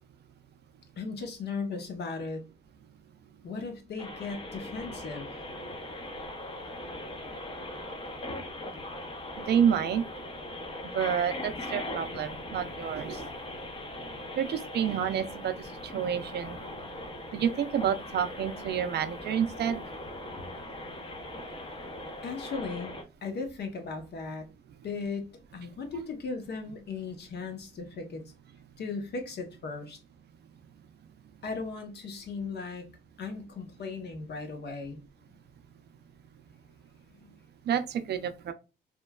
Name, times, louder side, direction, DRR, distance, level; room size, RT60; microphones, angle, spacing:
voice 1, 1.0-2.4 3.4-5.3 22.2-22.9 23.2-24.5 24.8-28.2 28.8-30.0 31.4-32.8 33.2-35.0 37.1-37.4, left 4 dB, 55° left, 0.8 m, -37 dB
sound 1, 4.0-23.0, left 1 dB, 25° left, 0.7 m, -40 dB
voice 2, 9.4-10.0 10.9-13.3 14.4-16.6 17.3-19.8 37.7-38.5, right 8 dB, 55° right, 0.5 m, -29 dB
3.0 x 2.2 x 2.2 m
cardioid pair, 90°, 20 cm